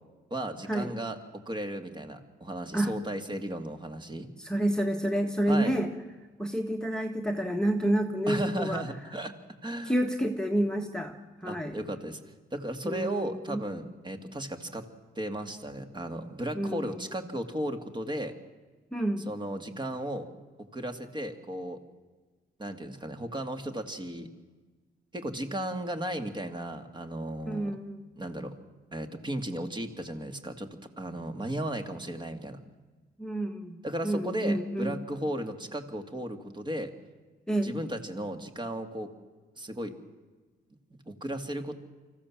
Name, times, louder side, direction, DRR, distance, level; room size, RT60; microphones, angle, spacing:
voice 1, 0.3-4.3 5.5-5.8 8.3-9.3 9.6-10.0 11.5-12.2 12.5-14.8 15.2-18.3 19.3-20.3 20.7-21.8 22.6-24.3 25.1-27.8 28.2-28.5 28.9-32.6 33.8-36.9 37.6-39.1 39.6-39.9 41.1-41.7, right 1 dB, 25° right, 6 dB, 2.3 m, -35 dB
voice 2, 4.4-5.9 6.4-8.8 9.9-11.2 11.4-11.8 12.8-13.6 16.6-17.0 18.9-19.2 27.5-28.0 33.2-33.8 34.0-34.9 37.5-37.7, right 1 dB, 5° left, 4 dB, 1.6 m, -29 dB
25.0 x 15.0 x 7.4 m, 1.3 s
cardioid pair, 90°, 20 cm